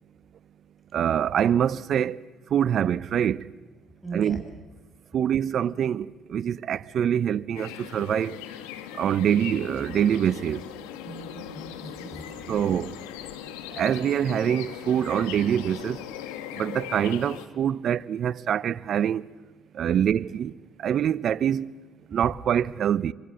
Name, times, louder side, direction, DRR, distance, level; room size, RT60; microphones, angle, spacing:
voice 1, 0.9-2.2 2.5-3.4 4.1-4.4 5.1-8.4 9.0-10.6 12.5-12.9 13.8-16.0 16.6-19.2 19.7-20.5 20.8-21.7 22.1-23.1, right 9 dB, 60° right, 0.7 m, -25 dB
voice 2, 4.0-4.4 11.0-12.8, right 3 dB, 5° left, 7.5 m, -39 dB
sound 1, 7.6-17.5, left 10 dB, 90° left, 1.8 m, -39 dB
26.5 x 25.0 x 7.8 m
supercardioid pair, 70°, 0 cm